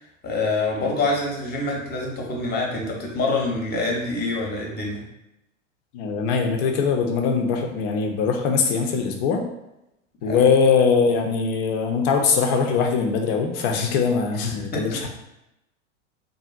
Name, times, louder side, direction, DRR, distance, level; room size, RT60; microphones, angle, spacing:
voice 1, 0.2-5.0 10.3-10.5 14.7-15.1, left 2 dB, 25° left, -1 dB, 0.9 m, -26 dB
voice 2, 5.9-9.5 10.2-15.1, left 5 dB, 45° left, 3 dB, 0.6 m, -21 dB
3.5 x 2.5 x 2.4 m, 0.89 s
figure-of-eight pair, 80°, 39 cm